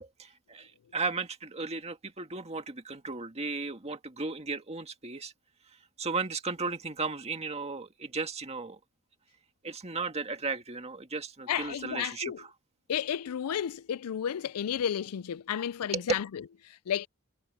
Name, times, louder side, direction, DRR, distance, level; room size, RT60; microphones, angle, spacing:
voice 1, 0.2-5.3 6.0-8.8 9.6-12.5 15.9-16.0, right 4 dB, 30° right, 2.0 m, -35 dB
voice 2, 11.5-12.4 12.9-17.1, left 9 dB, 85° left, 0.4 m, -32 dB
head